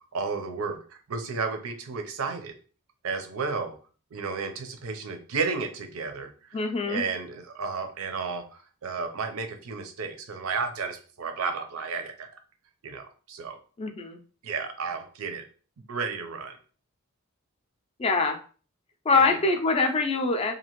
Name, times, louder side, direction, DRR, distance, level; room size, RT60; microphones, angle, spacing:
voice 1, 0.1-2.5 3.0-3.8 4.1-6.3 6.9-12.3 12.8-13.6 14.4-15.4 15.9-16.5 19.1-19.4, right 4 dB, 80° right, 6 dB, 0.5 m, -32 dB
voice 2, 6.5-7.0 13.8-14.2 18.0-18.4 19.1-20.5, left 3 dB, 25° left, 5 dB, 0.4 m, -24 dB
2.8 x 2.5 x 2.9 m, 0.39 s
head